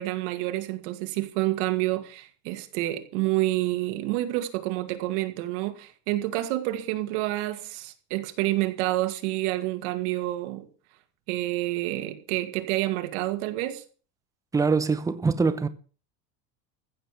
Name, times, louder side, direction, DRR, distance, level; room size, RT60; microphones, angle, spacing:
voice 1, 0.0-10.7 11.3-13.8, right 16 dB, 70° right, 2.2 m, -28 dB
voice 2, 14.5-15.7, right 4 dB, 10° right, 0.7 m, -23 dB
15.0 x 7.7 x 6.7 m
cardioid pair, 170°, 36 cm